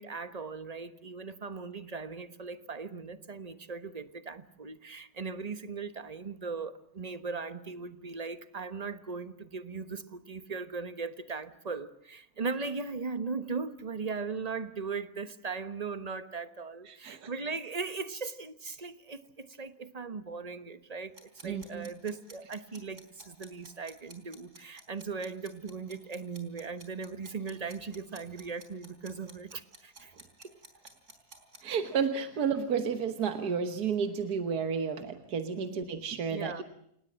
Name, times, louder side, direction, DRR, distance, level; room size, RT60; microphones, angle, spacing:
voice 1, 0.0-30.1 30.4-30.5 35.6-35.8 36.3-36.6, right 4 dB, 25° right, 12 dB, 1.2 m, -38 dB
voice 2, 16.9-17.3 21.4-21.9 30.1-30.2 31.6-36.6, right 6 dB, 75° right, 8 dB, 1.8 m, -32 dB
sound 1, 21.1-31.6, right 2 dB, 50° right, 4.6 m, -52 dB
29.0 x 18.5 x 7.5 m, 0.74 s
omnidirectional pair, 1.7 m